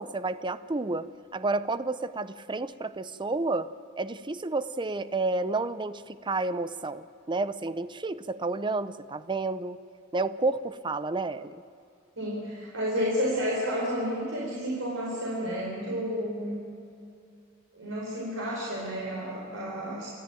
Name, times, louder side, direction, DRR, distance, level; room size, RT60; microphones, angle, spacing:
voice 1, 0.0-3.7 4.0-9.8 10.1-11.6, right 3 dB, 25° right, 14 dB, 0.6 m, -30 dB
voice 2, 12.2-16.6 17.7-20.1, equal, 85° right, -4 dB, 4.7 m, -31 dB
28.5 x 13.5 x 9.1 m, 2.4 s
head